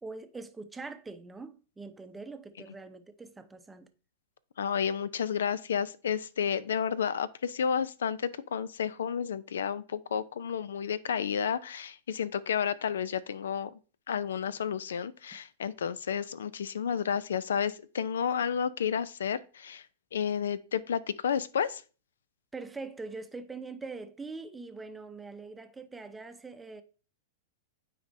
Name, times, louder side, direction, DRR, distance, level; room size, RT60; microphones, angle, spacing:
voice 1, 0.0-3.9 22.5-26.8, right 3 dB, 10° right, 0.6 m, -43 dB
voice 2, 4.6-13.7 14.1-19.8 20.1-21.8, left 7 dB, 85° left, 0.4 m, -31 dB
9.3 x 4.2 x 2.6 m
hypercardioid pair, 125°, 0 cm